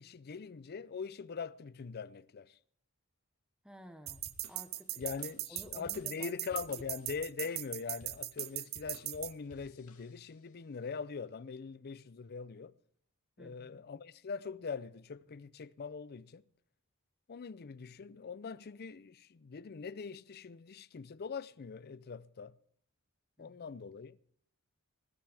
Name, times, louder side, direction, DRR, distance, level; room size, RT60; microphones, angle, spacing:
voice 1, 0.0-2.6 5.0-12.7 13.4-16.4 17.3-22.6 23.4-24.2, left 5 dB, 45° left, 0.5 m, -42 dB
voice 2, 3.6-5.1 5.5-6.8 13.4-13.8 23.4-23.6, equal, 5° right, 1.0 m, -54 dB
sound 1, 4.1-10.5, left 1 dB, 80° left, 2.8 m, -58 dB
sound 2, 4.1-9.3, right 15 dB, 45° right, 0.6 m, -39 dB
20.5 x 13.0 x 3.4 m
head